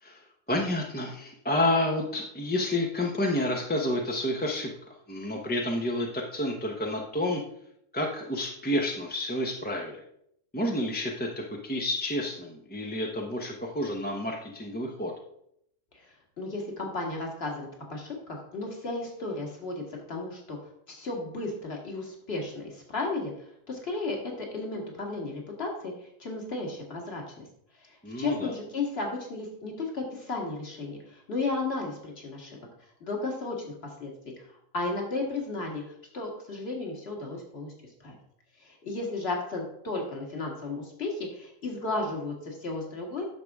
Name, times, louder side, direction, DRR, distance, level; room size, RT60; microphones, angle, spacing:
voice 1, 0.0-4.7 5.1-7.4 7.9-10.0 10.5-11.3 11.6-15.1 28.0-28.5, left 1 dB, 10° left, 0 dB, 0.7 m, -29 dB
voice 2, 15.9-20.6 20.9-27.5 27.8-32.6 33.0-33.7 34.0-34.5 34.7-37.7 38.0-38.2 38.6-43.3, left 3 dB, 40° left, 0 dB, 2.1 m, -34 dB
10.5 x 6.8 x 3.6 m, 0.73 s
omnidirectional pair, 1.6 m